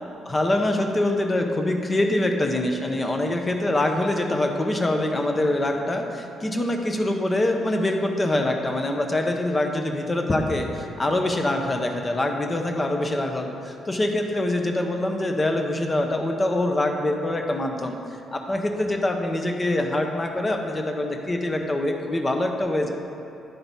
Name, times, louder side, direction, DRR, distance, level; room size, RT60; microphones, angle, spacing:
voice 1, 0.3-18.0 18.3-22.9, left 1 dB, 25° left, 3 dB, 0.8 m, -24 dB
10.0 x 3.8 x 5.4 m, 2.7 s
cardioid pair, 90°, 0 cm